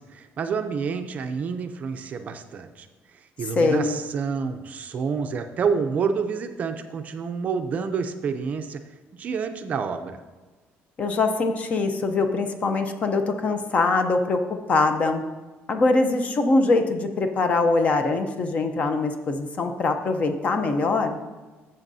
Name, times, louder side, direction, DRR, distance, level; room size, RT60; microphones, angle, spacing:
voice 1, 0.0-2.9 3.1-8.8 9.2-10.2, right 5 dB, 35° right, 7 dB, 0.5 m, -28 dB
voice 2, 3.6-4.0 11.0-15.2 15.7-21.2, left 3 dB, 30° left, 6 dB, 0.6 m, -23 dB
13.5 x 7.5 x 2.7 m, 1.2 s
cardioid pair, 175°, 5 cm